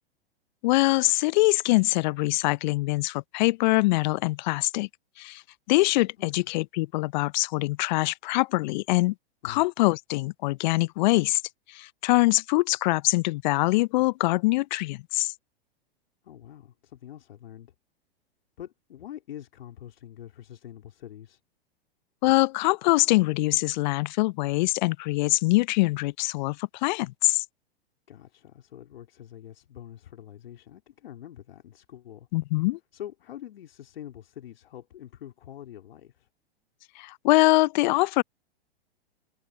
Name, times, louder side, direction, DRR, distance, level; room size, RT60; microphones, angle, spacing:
voice 1, 0.6-4.9 5.2-5.4 5.7-9.1 9.4-11.4 11.7-15.3 22.2-27.4 32.3-32.8 37.0-38.2, left 21 dB, 50° left, 0.6 m, -23 dB
voice 2, 16.2-17.7 18.6-21.4 28.1-32.3 32.9-36.3, left 11 dB, 70° left, 3.5 m, -45 dB
hypercardioid pair, 105°, 31 cm